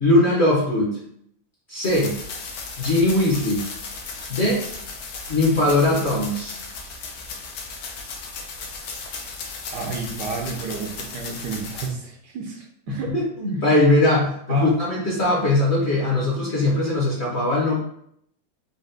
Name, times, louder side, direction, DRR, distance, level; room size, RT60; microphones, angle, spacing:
voice 1, 0.0-1.0 1.7-2.1 2.8-3.6 4.3-4.6 5.3-6.5 13.1-17.8, left 2 dB, 45° left, -5 dB, 1.0 m, -20 dB
sound 1, 1.8-11.9, left 4 dB, 70° left, 1.2 m, -35 dB
voice 2, 9.7-13.1 14.5-14.7, right 4 dB, 70° right, 2 dB, 1.1 m, -31 dB
4.2 x 2.5 x 3.7 m, 0.70 s
omnidirectional pair, 2.1 m